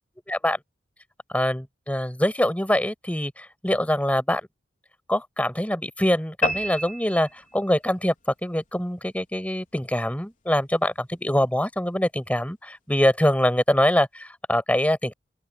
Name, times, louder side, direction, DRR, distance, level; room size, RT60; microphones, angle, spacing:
voice 1, 0.3-0.6 1.3-4.4 5.1-8.1 8.4-15.1, left 1 dB, 10° left, 6.7 m, -24 dB
sound 1, 6.4-8.0, equal, 50° left, 3.9 m, -29 dB
open air
head